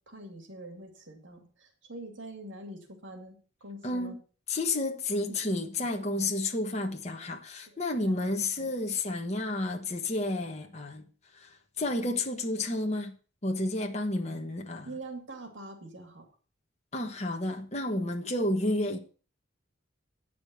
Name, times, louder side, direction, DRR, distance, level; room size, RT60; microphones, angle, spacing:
voice 1, 0.1-4.2 5.3-5.7 6.0-6.3 7.7-7.8 8.0-8.7 14.8-16.3 18.8-18.9, right 2 dB, 70° right, 2.5 m, -45 dB
voice 2, 3.8-4.1 4.5-11.1 11.3-13.1 13.4-14.9 16.9-19.0, left 2 dB, 35° left, 1.2 m, -31 dB
9.5 x 5.1 x 7.8 m
head